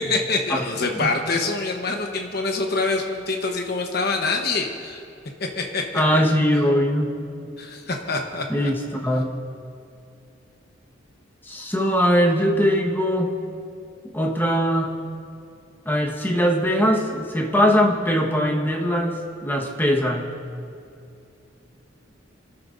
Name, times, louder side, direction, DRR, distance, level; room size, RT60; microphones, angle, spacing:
voice 1, 0.0-5.0 5.6-5.8 7.6-8.7, left 3 dB, 55° left, 2 dB, 1.0 m, -25 dB
voice 2, 5.9-7.2 8.5-9.3 11.4-13.4 14.1-15.0 15.8-20.3, equal, 10° left, -1 dB, 1.3 m, -21 dB
28.0 x 12.5 x 2.6 m, 2.5 s
head